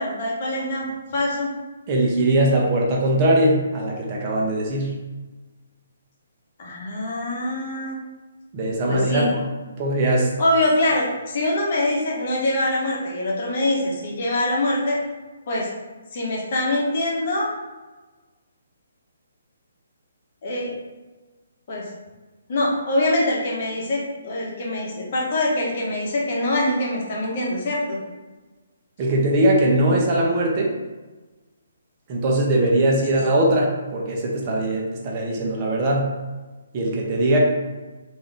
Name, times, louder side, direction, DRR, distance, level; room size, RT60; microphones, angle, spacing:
voice 1, 0.0-1.5 6.6-8.0 8.9-9.3 10.4-15.0 15.5-15.7 16.1-17.5 20.4-20.8 21.7-21.8 22.5-28.0 33.1-33.2, left 1 dB, 50° left, -3 dB, 1.1 m, -24 dB
voice 2, 1.9-4.9 8.5-9.3 9.8-10.3 29.0-30.7 32.1-36.1 36.7-37.4, right 1 dB, 35° right, -2 dB, 0.8 m, -20 dB
3.6 x 2.7 x 3.4 m, 1.2 s
hypercardioid pair, 145°, 0 cm